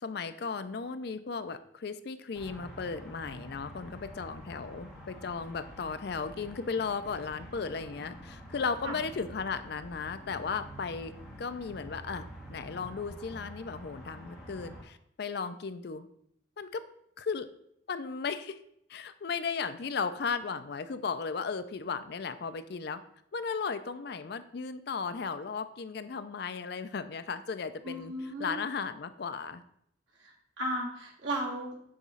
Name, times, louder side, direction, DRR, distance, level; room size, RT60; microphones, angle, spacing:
voice 1, 0.0-11.1 11.4-16.1 16.6-16.8 17.2-17.5 17.9-18.6 18.9-23.0 23.3-28.1 28.4-29.6, left 5 dB, 55° left, 11 dB, 0.4 m, -35 dB
sound 1, 2.3-14.8, equal, ahead, 1.5 m, -47 dB
voice 2, 27.8-28.6 30.2-31.8, right 1 dB, 80° right, -2 dB, 1.9 m, -35 dB
8.4 x 3.1 x 5.4 m, 0.72 s
head